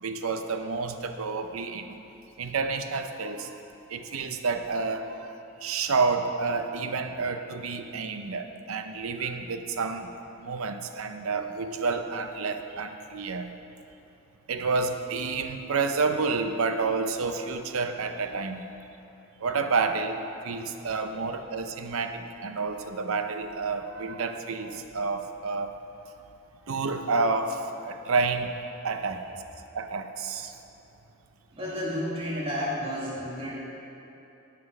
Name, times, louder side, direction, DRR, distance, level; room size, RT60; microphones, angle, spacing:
voice 1, 0.0-1.9 2.4-3.6 3.9-5.3 5.6-10.1 10.4-13.5 14.5-18.7 19.4-20.2 20.4-25.7 26.7-28.5 28.8-29.2 29.7-30.5, right 4 dB, 80° right, 7 dB, 0.6 m, -29 dB
voice 2, 31.5-33.5, equal, 25° right, -7 dB, 2.1 m, -31 dB
11.0 x 6.1 x 6.0 m, 3.0 s
head